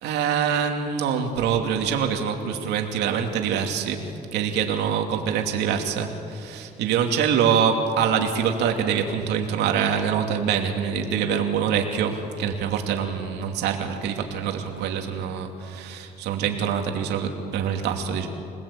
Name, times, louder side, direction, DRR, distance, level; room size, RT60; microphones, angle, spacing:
voice 1, 0.0-4.1 4.3-18.3, right 7 dB, 85° right, 3 dB, 2.8 m, -25 dB
26.5 x 19.5 x 8.7 m, 2.9 s
cardioid pair, 110°, 17 cm